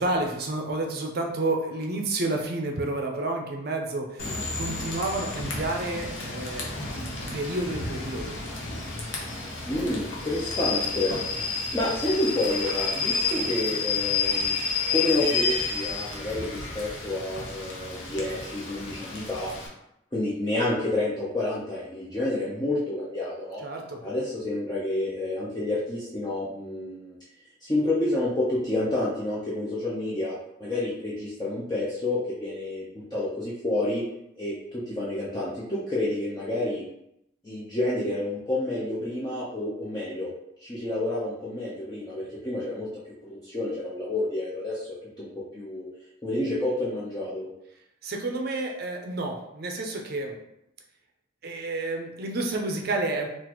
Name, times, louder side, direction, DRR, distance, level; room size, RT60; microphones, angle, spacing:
voice 1, 0.0-8.4 23.6-24.0 48.0-50.4 51.4-53.3, right 2 dB, 50° right, 2 dB, 0.5 m, -30 dB
Rain / Train, 4.2-19.7, left 4 dB, 70° left, 0.8 m, -30 dB
voice 2, 9.6-14.6 14.9-19.5 20.1-23.6 24.0-27.2 27.6-30.3 30.6-34.0 34.4-36.8 37.4-40.3 40.6-42.9 43.2-44.9 45.2-45.3 45.5-45.9 46.2-47.5, left 1 dB, 20° left, -9 dB, 0.6 m, -29 dB
3.9 x 2.5 x 2.9 m, 0.82 s
head